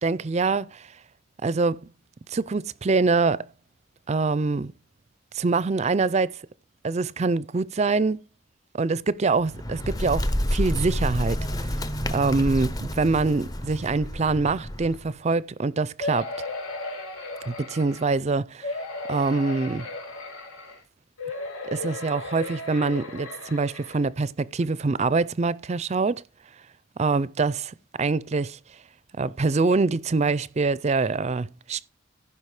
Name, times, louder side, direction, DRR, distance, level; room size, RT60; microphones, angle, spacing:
voice 1, 0.0-0.9 1.4-1.9 2.3-3.5 4.1-4.7 5.3-6.4 6.8-8.2 8.7-11.7 12.1-16.3 17.5-18.7 19.1-19.9 21.6-26.2 27.0-28.6 29.2-31.9, right 3 dB, 30° right, 0.4 m, -25 dB
Bird, 9.4-15.1, equal, 20° left, 0.6 m, -29 dB
sound 1, 16.0-18.2 18.6-20.8 21.2-24.0 24.6-24.7 25.0-25.1, left 2 dB, 85° left, 2.6 m, -35 dB
15.0 x 5.5 x 4.8 m
head